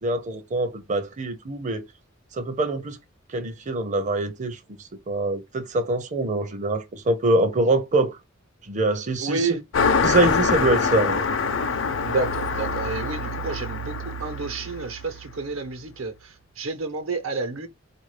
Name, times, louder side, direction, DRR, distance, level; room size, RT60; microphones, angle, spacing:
voice 1, 0.0-1.8 2.3-3.0 3.3-4.6 5.1-8.2 8.7-9.6 10.0-11.2, right 2 dB, 40° right, 0.5 m, -24 dB
voice 2, 9.2-9.6 12.0-17.7, right 3 dB, 85° right, 1.0 m, -30 dB
Car passing by, 9.7-15.6, left 4 dB, 65° left, 0.6 m, -25 dB
3.9 x 2.6 x 3.2 m
head